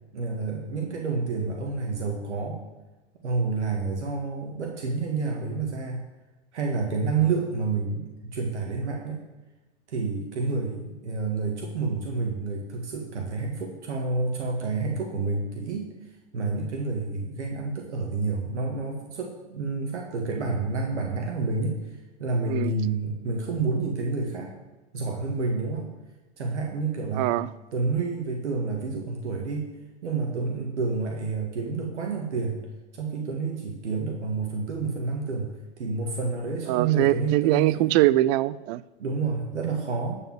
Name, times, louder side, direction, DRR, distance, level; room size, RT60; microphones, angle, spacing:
voice 1, 0.1-2.6 3.2-6.1 6.5-9.2 9.9-15.9 16.3-21.8 22.2-24.5 24.9-25.9 26.4-27.3 27.7-29.7 30.0-32.6 32.9-37.7 39.0-40.2, right 4 dB, 80° right, 0 dB, 2.1 m, -29 dB
voice 2, 27.1-27.5 36.7-38.8, right 16 dB, 40° right, 18 dB, 0.4 m, -22 dB
12.5 x 5.5 x 7.6 m, 1.1 s
hypercardioid pair, 100°, 34 cm